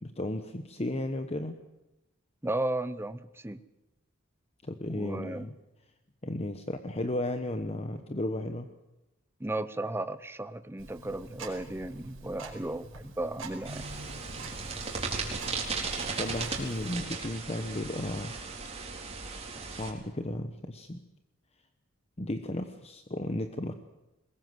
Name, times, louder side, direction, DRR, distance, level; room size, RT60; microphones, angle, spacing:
voice 1, 0.0-1.6 4.6-5.5 6.2-8.7 16.1-18.3 19.7-21.0 22.2-23.7, left 1 dB, 30° left, 8 dB, 1.1 m, -34 dB
voice 2, 2.4-3.6 4.9-5.5 9.4-13.8, right 2 dB, 10° right, 13 dB, 0.8 m, -35 dB
Tick-tock, 10.8-16.9, right 3 dB, 80° right, 5.1 m, -46 dB
sound 1, 13.6-19.9, right 4 dB, 30° right, 4.3 m, -36 dB
22.5 x 20.5 x 7.9 m, 0.97 s
head